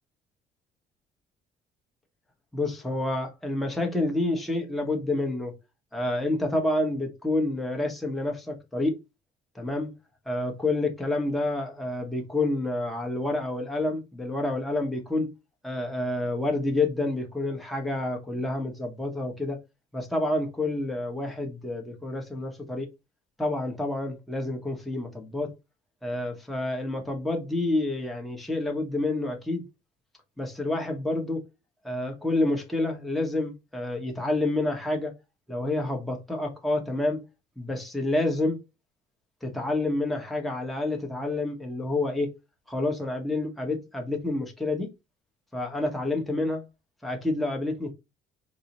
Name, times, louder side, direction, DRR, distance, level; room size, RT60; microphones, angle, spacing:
voice 1, 2.5-5.5 5.9-9.0 9.5-9.9 10.3-15.3 15.6-19.6 19.9-22.9 23.4-25.5 26.0-29.6 30.4-31.4 31.8-35.1 35.5-37.2 37.6-38.6 39.4-42.3 42.7-44.9 45.5-46.6 47.0-47.9, left 2 dB, ahead, 0.8 m, -28 dB
3.8 x 2.0 x 2.8 m
cardioid pair, 110°, 17 cm